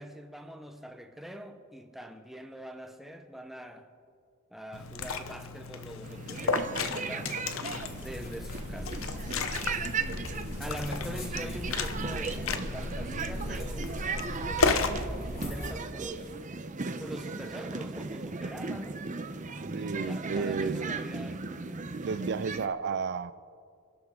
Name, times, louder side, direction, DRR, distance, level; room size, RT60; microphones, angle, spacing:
voice 1, 0.0-3.9 4.5-7.4 7.9-9.0 10.6-14.0 14.3-16.3 17.0-19.0 19.8-21.4, equal, ahead, 1.0 m, -43 dB
Liquid, 4.7-15.0, left 4 dB, 70° left, 0.9 m, -34 dB
sound 1, 6.0-22.7, right 4 dB, 35° right, 0.8 m, -37 dB
sound 2, 7.7-15.7, equal, 45° left, 4.0 m, -39 dB
voice 2, 19.7-20.9 22.0-23.3, right 5 dB, 55° right, 0.4 m, -32 dB
26.0 x 12.0 x 3.8 m
head